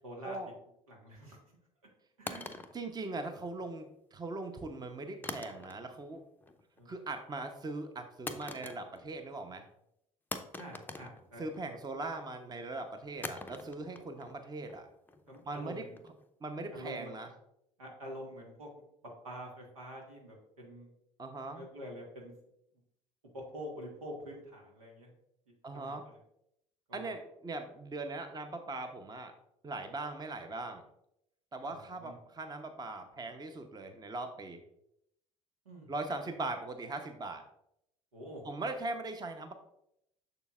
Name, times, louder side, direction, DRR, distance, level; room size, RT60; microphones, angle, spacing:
voice 1, 0.0-0.4 0.9-1.4 2.2-2.7 3.5-3.6 6.8-6.9 10.6-11.4 15.3-16.0 16.7-17.1 17.8-18.7 19.0-20.9 21.6-22.3 23.3-25.1 25.7-26.2 26.9-27.1 31.7-32.1 35.6-35.9 38.1-38.4, equal, 85° right, -1 dB, 1.6 m, -46 dB
sound 1, 2.3-3.7 5.2-6.1 6.4-6.8 8.3-9.2 9.5-9.6 10.3-11.8 13.2-16.2, left 2 dB, 10° left, 0.6 m, -44 dB
voice 2, 2.7-6.2 6.9-9.6 11.4-14.9 15.5-15.8 16.4-17.3 21.2-21.7 25.6-26.1 26.9-29.3 29.6-30.8 31.5-34.6 35.9-37.4 38.4-39.5, right 2 dB, 25° right, 6 dB, 0.8 m, -40 dB
6.8 x 6.5 x 2.4 m, 0.77 s
hypercardioid pair, 60°, 18 cm